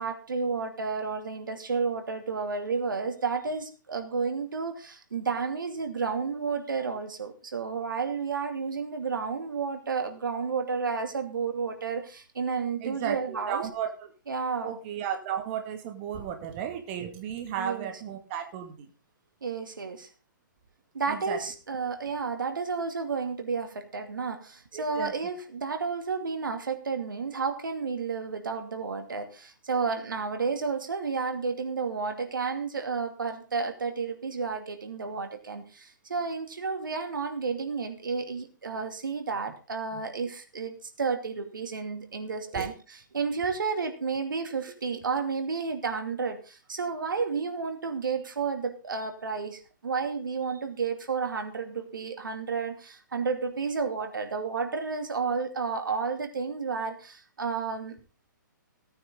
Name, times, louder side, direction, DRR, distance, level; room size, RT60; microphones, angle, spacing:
voice 1, 0.0-13.7 14.3-14.8 17.6-17.9 19.4-20.1 20.9-42.7 43.1-58.0, right 5 dB, 80° right, 6 dB, 2.6 m, -31 dB
voice 2, 12.8-14.1 14.6-18.9 21.1-21.4 24.7-25.1 39.9-40.0 42.5-42.7, right 9 dB, 35° right, 5 dB, 2.2 m, -34 dB
18.0 x 9.3 x 3.8 m, 0.35 s
hypercardioid pair, 135°, 11 cm